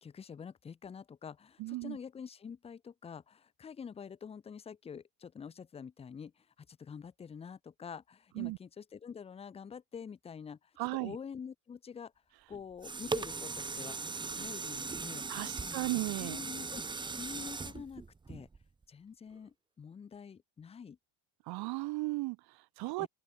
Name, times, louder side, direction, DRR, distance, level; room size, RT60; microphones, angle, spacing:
voice 1, 0.0-10.7 11.0-12.1 12.5-14.0 14.3-15.3 15.6-16.8 17.1-18.5 18.9-21.0 23.0-23.1, left 6 dB, 15° left, 0.6 m, -47 dB
voice 2, 1.6-2.0 8.4-8.6 10.8-11.2 15.3-16.4 21.5-23.1, right 22 dB, 60° right, 1.1 m, -36 dB
sound 1, 12.5-18.8 19.4-19.5, right 4 dB, 10° right, 1.0 m, -39 dB
open air
cardioid pair, 170°, 43 cm